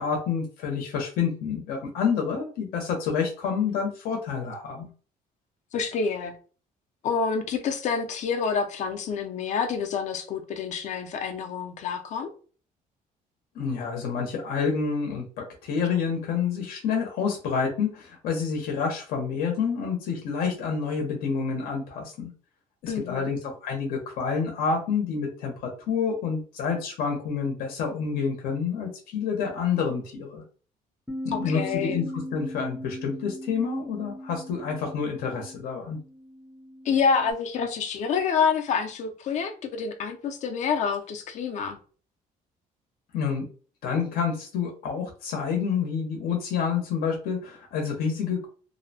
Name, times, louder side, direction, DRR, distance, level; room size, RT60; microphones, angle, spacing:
voice 1, 0.0-4.9 13.5-22.3 22.8-30.4 31.2-36.0 43.1-43.5 43.8-48.5, left 6 dB, 80° left, 0.8 m, -28 dB
voice 2, 5.7-6.4 7.0-12.3 22.9-23.3 31.3-32.0 36.8-41.8, left 6 dB, 50° left, 0.5 m, -27 dB
Bass guitar, 31.1-37.3, equal, 5° right, 0.5 m, -39 dB
2.7 x 2.0 x 2.7 m
cardioid pair, 155°, 15 cm